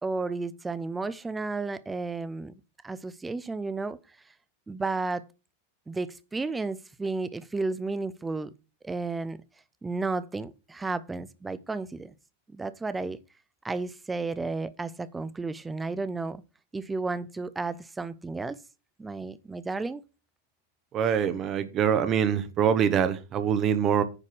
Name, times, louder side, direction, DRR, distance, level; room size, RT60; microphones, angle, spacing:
voice 1, 0.0-2.5 2.8-4.0 4.7-5.2 5.9-8.5 8.8-9.4 9.8-12.1 12.5-13.2 13.6-16.4 16.7-18.6 19.0-20.0, right 3 dB, 10° right, 0.7 m, -32 dB
voice 2, 20.9-24.0, right 8 dB, 30° right, 1.0 m, -24 dB
9.9 x 4.1 x 6.3 m
figure-of-eight pair, 90°, 0 cm